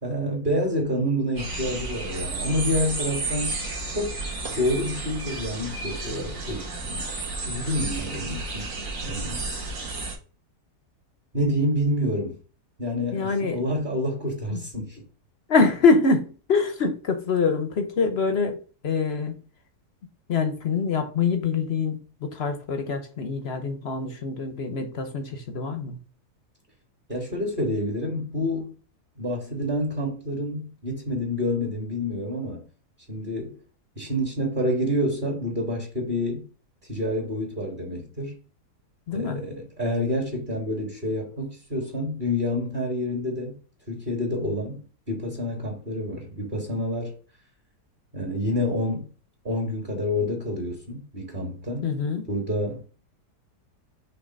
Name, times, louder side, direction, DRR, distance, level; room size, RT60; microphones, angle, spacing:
voice 1, 0.0-3.6 3.9-4.2 4.5-7.1 7.4-8.7 9.0-9.5 11.3-12.4 12.8-15.0 27.1-28.7 29.2-32.6 33.1-33.6 33.9-36.4 36.9-38.4 39.1-43.6 43.9-47.1 48.1-49.1 49.4-51.9 52.3-52.8, left 1 dB, 30° right, 1.7 m, -28 dB
sound 1, 1.4-10.1, right 3 dB, 55° right, 1.8 m, -32 dB
voice 2, 13.1-13.7 14.5-14.9 15.5-18.6 18.8-19.3 20.3-26.0 39.1-39.4 51.8-52.3, left 4 dB, 50° left, 0.9 m, -25 dB
5.7 x 3.3 x 5.2 m
omnidirectional pair, 1.7 m